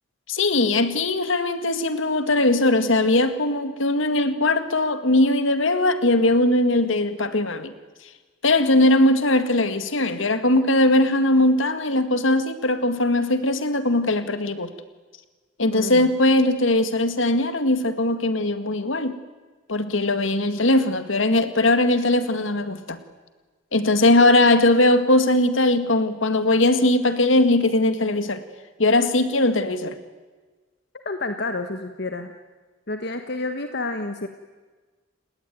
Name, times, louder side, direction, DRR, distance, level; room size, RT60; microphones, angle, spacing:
voice 1, 0.3-7.7 8.4-14.7 15.6-19.2 19.7-23.0 23.7-28.4 28.8-30.0, left 2 dB, 75° left, 10 dB, 2.0 m, -20 dB
voice 2, 15.7-16.1 31.0-32.3 32.9-34.3, left 2 dB, 55° left, 7 dB, 1.4 m, -29 dB
29.5 x 20.0 x 9.4 m, 1.4 s
head